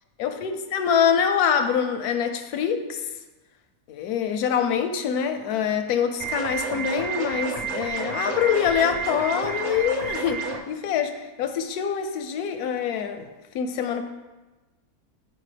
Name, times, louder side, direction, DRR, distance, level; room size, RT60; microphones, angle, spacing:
voice 1, 0.2-3.0 3.9-13.3 13.5-14.0, left 7 dB, 90° left, 7 dB, 1.1 m, -25 dB
sound 1, 6.2-10.6, right 5 dB, 60° right, 0.4 m, -30 dB
9.8 x 4.4 x 3.3 m, 1.1 s
omnidirectional pair, 1.6 m